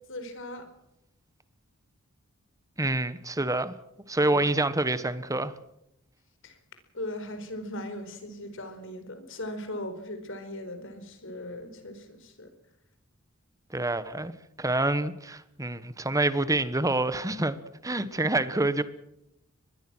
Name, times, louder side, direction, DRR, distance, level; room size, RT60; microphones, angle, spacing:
voice 1, 0.1-0.7 4.3-4.4 6.4-6.6 6.9-12.5, left 1 dB, 65° left, 4.6 m, -38 dB
voice 2, 2.8-3.7 4.1-5.5 13.7-14.3 14.6-17.6 17.8-18.8, right 2 dB, 15° right, 1.3 m, -27 dB
24.0 x 21.0 x 6.2 m
head